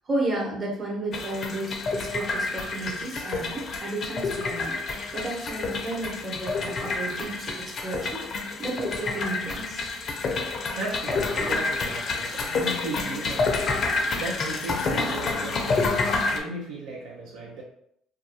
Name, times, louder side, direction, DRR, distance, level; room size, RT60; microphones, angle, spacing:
voice 1, 0.1-8.2 8.6-9.9, right 2 dB, 35° right, -2 dB, 0.9 m, -33 dB
sound 1, 1.1-16.4, left 3 dB, 50° left, 0.4 m, -28 dB
voice 2, 10.8-17.6, right 2 dB, 75° right, -2 dB, 0.4 m, -36 dB
2.2 x 2.2 x 2.7 m, 0.70 s
hypercardioid pair, 65°, 0 cm